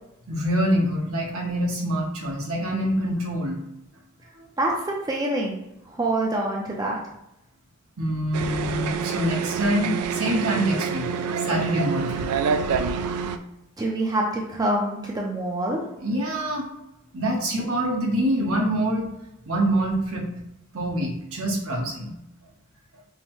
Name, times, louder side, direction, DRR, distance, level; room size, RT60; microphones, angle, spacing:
voice 1, 0.3-3.6 4.4-4.5 8.0-11.1 11.4-12.3 16.0-16.7 17.1-19.1 19.5-20.3 20.7-22.1, right 1 dB, 70° right, -1 dB, 1.0 m, -25 dB
voice 2, 4.6-5.6 5.9-7.0 13.8-15.8, right 1 dB, 15° right, -1 dB, 0.4 m, -26 dB
sound 1, 8.3-13.4, right 6 dB, 85° right, 0.3 m, -27 dB
5.5 x 2.1 x 3.0 m, 0.86 s
head